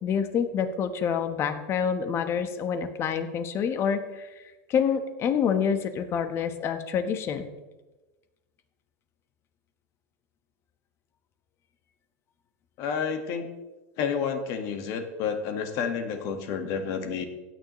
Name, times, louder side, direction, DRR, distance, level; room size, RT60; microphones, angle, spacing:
voice 1, 0.0-4.3 4.7-7.5, left 7 dB, 35° left, 9 dB, 1.2 m, -27 dB
voice 2, 12.8-13.5 14.0-17.3, left 6 dB, 50° left, 6 dB, 1.6 m, -30 dB
16.0 x 9.3 x 3.1 m, 1.1 s
supercardioid pair, 130°, 8 cm